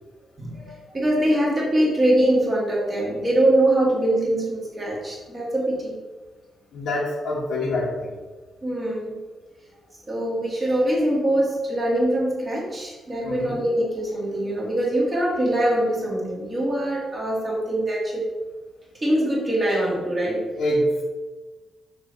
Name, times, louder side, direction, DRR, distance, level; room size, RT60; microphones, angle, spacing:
voice 1, 0.4-6.0 8.6-9.2 10.1-18.3 19.0-20.4, right 1 dB, 25° right, -5 dB, 1.8 m, -23 dB
voice 2, 6.7-8.2 13.2-13.6 20.6-21.0, left 1 dB, 80° left, -4 dB, 1.3 m, -25 dB
6.1 x 3.3 x 5.2 m, 1.3 s
cardioid pair, 135°, 0 cm